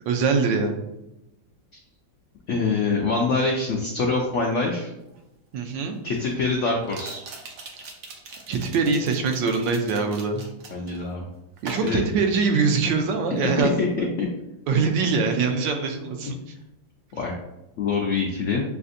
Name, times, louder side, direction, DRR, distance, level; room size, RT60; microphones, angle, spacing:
voice 1, 0.1-0.8 5.5-6.0 8.5-10.5 11.6-14.1 14.7-16.5, right 4 dB, 80° right, 4 dB, 1.3 m, -23 dB
voice 2, 2.5-4.9 6.0-7.2 10.7-11.3 11.8-12.0 13.4-14.3 17.2-17.4 17.8-18.6, left 4 dB, 85° left, 0 dB, 0.6 m, -25 dB
sound 1, 5.1-5.2 6.8-11.0 11.6-12.9 13.2-13.5, right 3 dB, 60° right, 1.0 m, -41 dB
6.6 x 2.6 x 2.5 m, 0.90 s
omnidirectional pair, 2.0 m